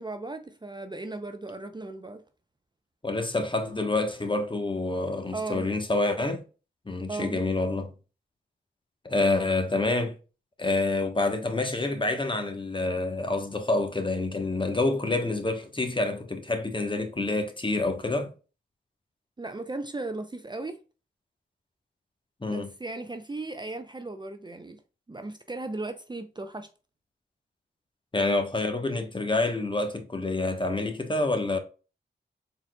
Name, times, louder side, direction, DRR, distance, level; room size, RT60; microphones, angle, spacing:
voice 1, 0.0-2.2 5.3-5.7 7.1-7.4 19.4-20.8 22.5-24.8 25.1-26.7, right 2 dB, 20° right, 0.5 m, -36 dB
voice 2, 3.0-6.4 6.9-7.9 9.0-10.1 10.6-18.3 22.4-22.7 28.1-31.6, left 2 dB, 25° left, 1.1 m, -27 dB
4.2 x 4.0 x 2.3 m
cardioid pair, 50°, 20 cm